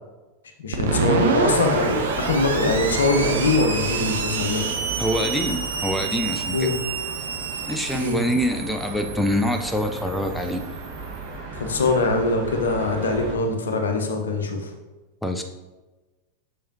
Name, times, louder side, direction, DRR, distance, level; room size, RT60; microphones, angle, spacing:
voice 1, 0.6-4.6 6.4-6.8 7.9-8.3 11.5-14.7, left 3 dB, 65° left, 4 dB, 1.0 m, -23 dB
Screech, 0.7-11.2, right 4 dB, 65° right, 0.6 m, -29 dB
sound 1, 0.9-13.3, right 3 dB, 45° right, 1.6 m, -33 dB
voice 2, 5.0-6.7 7.7-10.6 15.2-15.4, equal, 5° left, 5 dB, 0.5 m, -25 dB
7.0 x 6.1 x 2.9 m, 1.2 s
figure-of-eight pair, 90°, 0 cm